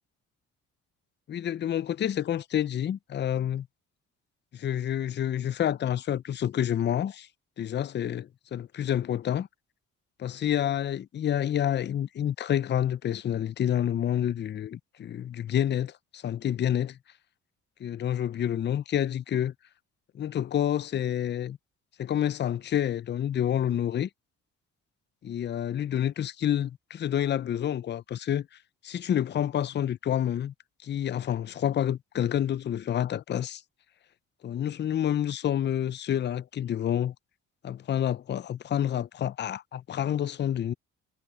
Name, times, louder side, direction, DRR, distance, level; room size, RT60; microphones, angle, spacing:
voice 1, 1.3-3.7 4.5-7.3 7.6-9.5 10.2-17.0 17.8-19.5 20.1-21.6 22.0-24.1 25.2-28.5 28.8-30.5 30.8-33.6 34.4-37.1 37.6-40.7, left 10 dB, 35° left, 0.5 m, -28 dB
cardioid pair, 90°, 30 cm